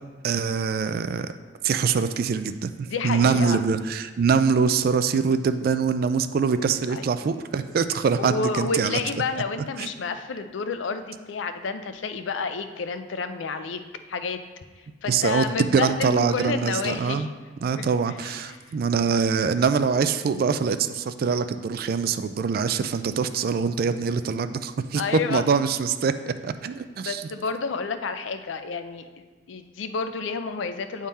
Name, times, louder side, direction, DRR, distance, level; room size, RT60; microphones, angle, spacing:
voice 1, 0.2-1.3 1.6-9.0 9.8-9.9 15.1-17.3 17.6-25.0 25.3-27.2, right 5 dB, 50° right, 11 dB, 0.3 m, -24 dB
voice 2, 2.9-3.6 6.9-7.1 7.9-13.8 14.1-14.4 14.8-17.3 17.8-18.6 24.9-25.4 27.0-29.1 29.5-31.1, left 4 dB, 85° left, 9 dB, 0.4 m, -30 dB
8.9 x 3.7 x 4.2 m, 1.4 s
head